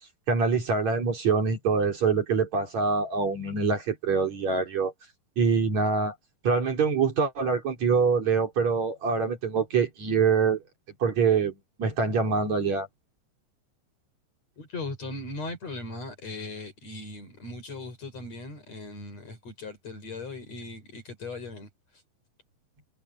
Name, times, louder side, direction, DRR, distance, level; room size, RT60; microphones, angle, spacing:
voice 1, 0.3-4.9 5.4-6.1 6.4-10.6 11.0-12.9, right 5 dB, 50° right, 4.6 m, -25 dB
voice 2, 14.6-21.7, left 2 dB, 45° left, 7.4 m, -38 dB
omnidirectional pair, 4.2 m